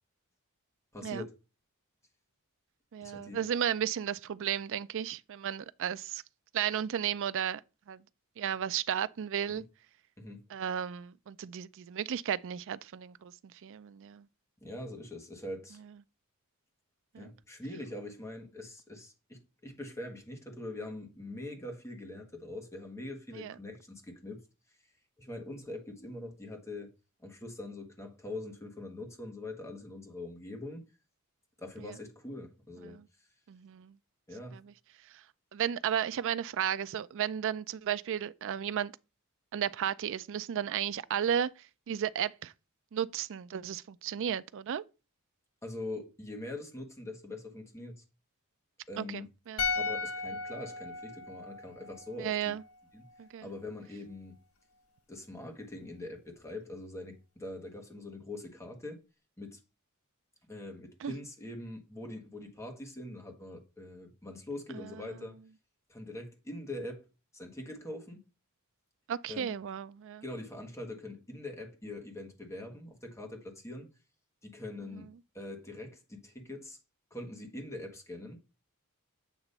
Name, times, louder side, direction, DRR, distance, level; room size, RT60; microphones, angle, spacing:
voice 1, 0.9-1.3 3.0-3.5 9.5-9.6 10.2-10.4 14.6-15.8 17.2-24.4 25.2-26.9 27.2-30.8 31.6-33.0 34.3-34.6 45.6-48.0 48.9-49.3 49.7-52.5 52.9-53.0 53.4-54.4 55.1-59.0 59.4-59.6 60.5-65.4 65.9-67.0 67.3-68.2 69.3-69.5 70.2-73.9 74.4-75.1 75.3-76.8 77.1-78.4, left 2 dB, 15° left, 1.4 m, -43 dB
voice 2, 2.9-6.2 6.5-7.6 7.9-8.0 8.4-9.6 10.5-13.3 13.6-14.3 17.1-17.3 23.3-23.5 31.8-31.9 32.8-33.0 33.5-34.0 34.5-34.7 35.5-38.9 39.5-41.5 41.9-42.5 42.9-44.8 49.0-49.6 52.2-52.6 53.2-53.5 61.0-61.1 64.7-65.1 69.1-70.2 74.9-75.1, right 9 dB, 60° right, 0.4 m, -34 dB
sound 1, 49.6-52.8 53.1-53.2, left 4 dB, 75° left, 1.0 m, -36 dB
8.2 x 2.9 x 5.4 m
head